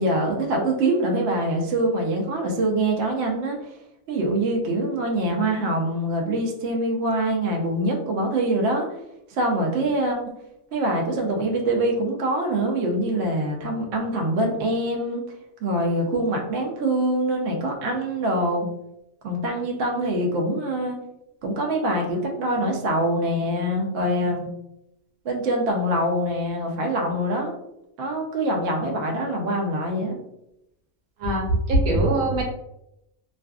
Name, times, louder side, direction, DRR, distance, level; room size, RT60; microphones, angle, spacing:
voice 1, 0.0-3.6 4.1-8.9 9.3-10.2 10.7-15.2 15.6-18.7 19.2-21.0 21.4-24.5 25.2-27.5 28.0-30.2, right 1 dB, 65° right, 1 dB, 0.8 m, -24 dB
voice 2, 31.2-32.4, right 1 dB, 85° right, 0 dB, 1.1 m, -21 dB
2.4 x 2.4 x 2.3 m, 0.83 s
omnidirectional pair, 1.5 m